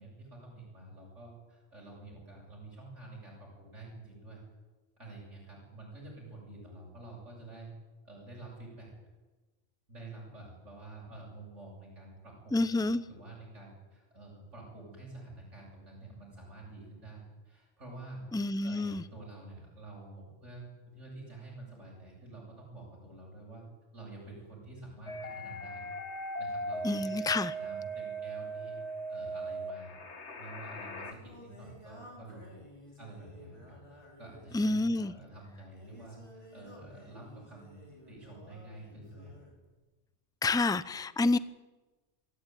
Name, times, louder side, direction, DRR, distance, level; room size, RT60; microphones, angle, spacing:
voice 1, 0.0-4.4 5.0-7.7 8.0-8.9 9.9-23.6 23.9-25.9 26.4-28.8 29.1-29.9 30.4-32.6 33.0-39.3, right 2 dB, 80° right, -4 dB, 8.3 m, -49 dB
voice 2, 12.5-13.0 18.3-19.0 26.8-27.5 34.5-35.1 40.4-41.4, left 2 dB, 5° left, 15 dB, 0.5 m, -28 dB
sound 1, 25.1-31.1, right 2 dB, 65° left, 2.0 m, -39 dB
Singing, 31.0-39.6, left 1 dB, 25° left, 5.9 m, -54 dB
26.0 x 17.5 x 9.3 m, 1.2 s
omnidirectional pair, 1.2 m